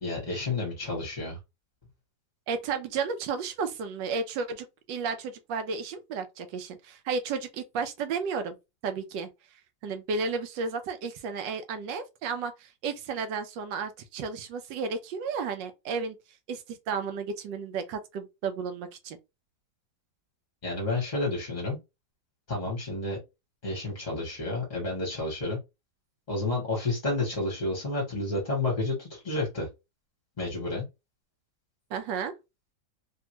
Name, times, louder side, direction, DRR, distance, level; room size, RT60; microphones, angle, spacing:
voice 1, 0.0-1.4 20.6-21.8 22.5-23.2 23.6-25.6 26.3-29.7 30.4-30.9, left 2 dB, 30° left, 1.0 m, -30 dB
voice 2, 2.5-8.6 8.8-9.3 9.8-16.2 16.5-19.2 31.9-32.3, right 5 dB, 85° right, 1.4 m, -33 dB
3.4 x 2.5 x 2.9 m
omnidirectional pair, 1.9 m